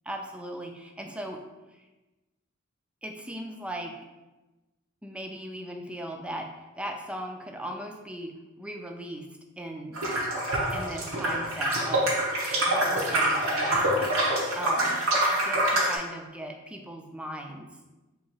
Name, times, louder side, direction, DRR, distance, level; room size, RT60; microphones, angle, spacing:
voice 1, 0.1-1.4 3.0-3.9 5.0-9.3 9.6-10.0 10.7-12.2 12.7-14.1 14.5-15.0 15.3-17.7, right 1 dB, 5° right, 3 dB, 0.3 m, -38 dB
sound 1, 9.9-16.0, right 1 dB, 90° right, 0.8 m, -26 dB
2.8 x 2.7 x 4.4 m, 1.1 s
head